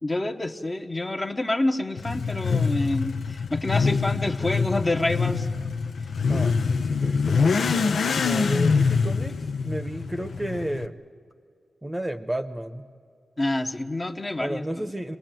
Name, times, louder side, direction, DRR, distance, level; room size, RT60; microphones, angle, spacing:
voice 1, 0.0-5.5 13.4-14.7, left 2 dB, 25° left, 5 dB, 1.0 m, -27 dB
Motorcycle / Accelerating revving vroom, 2.0-10.9, left 5 dB, 85° left, 0.7 m, -25 dB
voice 2, 6.3-11.0 11.8-12.9 14.4-15.2, right 1 dB, 10° right, 8 dB, 0.9 m, -32 dB
25.5 x 20.0 x 9.1 m, 2.2 s
wide cardioid pair, 100°, 0 cm